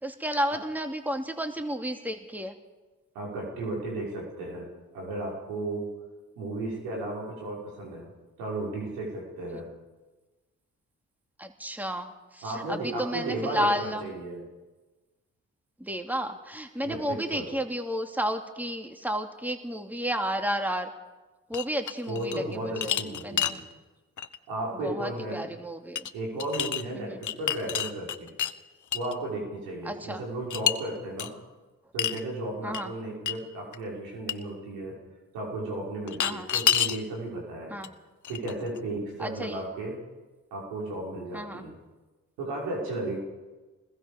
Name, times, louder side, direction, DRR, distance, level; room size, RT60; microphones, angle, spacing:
voice 1, 0.0-2.5 11.4-14.0 15.8-20.9 21.5-22.4 22.8-22.9 23.2-23.6 24.8-26.1 27.0-27.2 29.9-30.2 32.6-32.9 36.2-36.5 37.7-37.9 39.2-39.6 41.3-41.6, equal, 5° right, 5 dB, 2.8 m, -32 dB
voice 2, 3.1-4.7 4.9-5.9 6.4-8.1 8.4-9.7 12.4-14.4 16.8-17.5 22.1-23.6 24.5-25.5 26.1-28.3 28.9-31.3 31.9-35.0 35.3-37.8 38.3-40.0 40.5-41.7 42.4-43.2, right 2 dB, 85° right, -2 dB, 6.0 m, -34 dB
sound 1, 21.5-22.4 22.8-23.6 24.2-24.4 26.0-26.1 26.4-26.8 27.2-28.5 28.9-29.1 30.5-30.8 31.2-31.3 32.0-32.2 32.7-32.8 33.3-33.4 33.7-33.8 34.3-34.4 36.1-37.0 37.8-37.9 38.2-38.8, left 9 dB, 55° left, 1.2 m, -28 dB
26.5 x 21.0 x 5.3 m, 1.2 s
hypercardioid pair, 40°, 36 cm